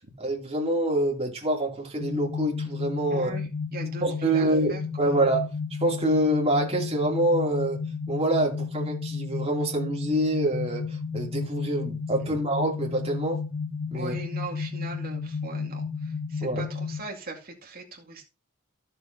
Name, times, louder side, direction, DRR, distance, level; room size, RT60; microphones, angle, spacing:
voice 1, 0.2-3.3 4.0-5.5 5.8-7.8 8.1-13.4 13.9-14.1 16.4-16.6, right 1 dB, 30° right, 2.6 m, -26 dB
sound 1, 2.0-17.0, left 5 dB, 50° left, 1.1 m, -32 dB
voice 2, 3.1-5.2 12.3-12.4 13.9-18.3, right 3 dB, 45° right, 2.2 m, -40 dB
13.0 x 6.8 x 2.7 m
head